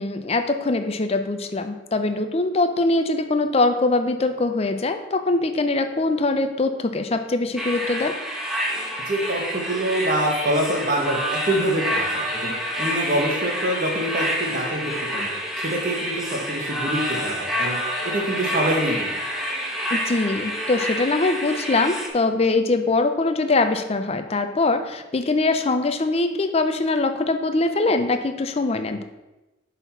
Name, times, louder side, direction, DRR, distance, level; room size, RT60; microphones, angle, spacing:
voice 1, 0.0-8.2 19.9-29.0, left 2 dB, 30° left, 8 dB, 0.5 m, -22 dB
sound 1, 7.6-22.1, equal, ahead, 1.0 m, -28 dB
voice 2, 9.1-14.8 15.1-15.3 15.6-17.8 18.0-19.1, right 1 dB, 40° right, -1 dB, 1.1 m, -25 dB
6.1 x 4.1 x 5.6 m, 1.0 s
head